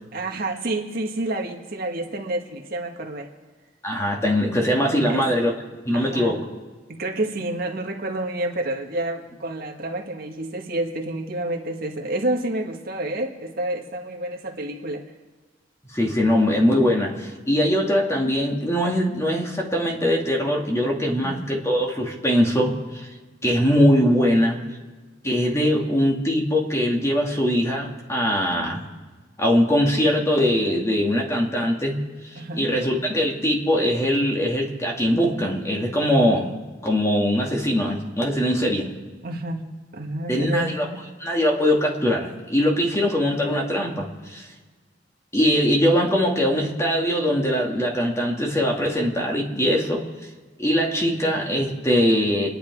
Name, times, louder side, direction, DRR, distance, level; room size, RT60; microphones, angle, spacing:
voice 1, 0.1-3.3 5.1-5.2 5.9-6.4 6.9-15.0 21.2-21.4 32.3-32.7 39.2-39.6 39.9-41.0, right 1 dB, 55° right, 2 dB, 1.8 m, -29 dB
voice 2, 3.8-5.5 5.8-6.5 15.9-22.7 23.4-24.6 25.2-28.8 29.4-32.0 32.6-36.5 36.8-38.9 40.3-40.9 41.2-44.5 45.3-50.0 50.6-52.5, equal, 15° left, 0 dB, 2.3 m, -21 dB
29.5 x 10.0 x 4.8 m, 1.4 s
head